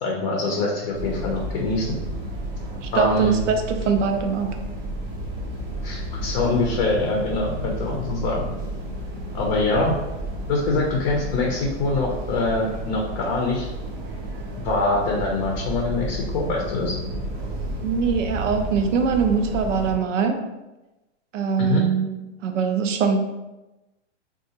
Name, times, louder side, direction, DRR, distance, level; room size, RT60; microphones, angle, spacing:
voice 1, 0.0-2.0 2.9-3.3 5.8-8.5 9.3-10.0 10.5-13.7 14.6-17.0 21.6-21.8, left 2 dB, 40° left, -1 dB, 0.6 m, -24 dB
sound 1, 0.9-19.9, right 1 dB, 30° right, 0.6 m, -32 dB
voice 2, 2.8-4.6 17.8-20.4 21.3-22.1 22.4-23.2, right 5 dB, 85° right, 5 dB, 0.6 m, -22 dB
3.7 x 2.4 x 2.8 m, 1.0 s
supercardioid pair, 150°, 36 cm